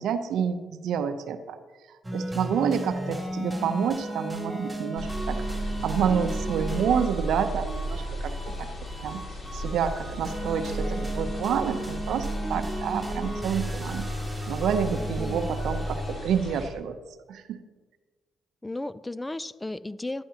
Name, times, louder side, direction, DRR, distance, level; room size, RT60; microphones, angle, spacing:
voice 1, 0.0-1.6 2.1-5.4 5.8-8.7 9.0-9.2 9.5-14.1 14.5-17.0 17.3-17.6, right 7 dB, 80° right, 9 dB, 0.6 m, -28 dB
sound 1, 2.0-16.1, right 1 dB, 10° right, 2.8 m, -35 dB
sound 2, 5.0-16.7, right 1 dB, 45° left, 2.3 m, -34 dB
voice 2, 15.0-15.5 18.6-20.2, left 2 dB, 15° left, 16 dB, 0.3 m, -34 dB
11.5 x 10.0 x 2.8 m, 1.3 s
cardioid pair, 70°, 0 cm